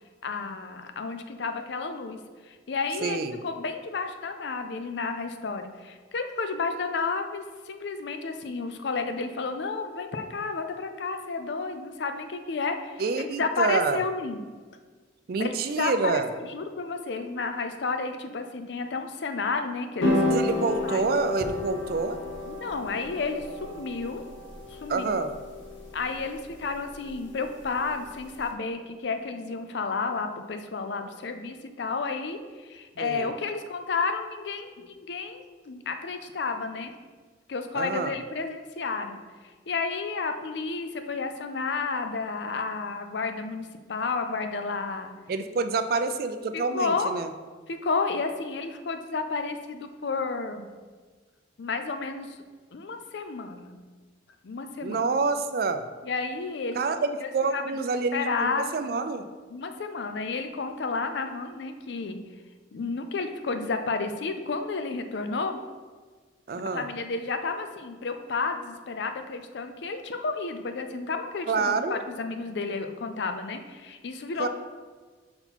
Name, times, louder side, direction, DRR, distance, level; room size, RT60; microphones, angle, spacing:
voice 1, 0.2-14.5 15.4-20.3 20.8-21.1 22.5-24.2 24.7-25.2 25.9-36.9 37.5-45.1 46.5-47.1 47.7-50.7 51.6-52.4 52.7-53.8 54.4-55.0 56.0-56.8 57.2-57.6 58.1-58.8 59.5-62.2 62.7-65.6 66.7-74.5, left 4 dB, 65° left, 7 dB, 0.5 m, -31 dB
voice 2, 3.0-3.4 13.0-14.0 15.3-16.3 20.3-22.2 24.9-25.3 33.0-33.3 37.7-38.1 45.3-47.3 54.8-55.9 56.8-59.3 66.5-66.9 71.5-72.0 74.4-74.5, right 4 dB, 50° right, 9 dB, 0.4 m, -27 dB
sound 1, 20.0-28.4, left 2 dB, 85° left, 0.9 m, -32 dB
5.5 x 4.4 x 4.1 m, 1.5 s
head